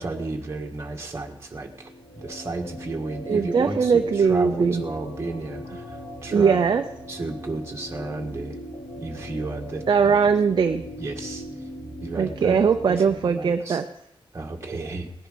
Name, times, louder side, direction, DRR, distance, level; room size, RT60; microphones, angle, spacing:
voice 1, 0.0-1.9 2.2-6.6 7.1-8.6 9.0-10.2 11.0-11.4 12.0-12.6 12.9-13.8 14.3-15.1, right 3 dB, 30° right, 1 dB, 1.8 m, -32 dB
sound 1, 1.5-13.1, equal, 85° left, 5.1 m, -39 dB
voice 2, 3.3-4.8 6.3-6.8 9.9-10.9 12.2-13.8, right 6 dB, 50° right, 6 dB, 0.6 m, -20 dB
18.0 x 10.5 x 5.2 m, 0.77 s
wide cardioid pair, 170°, 9 cm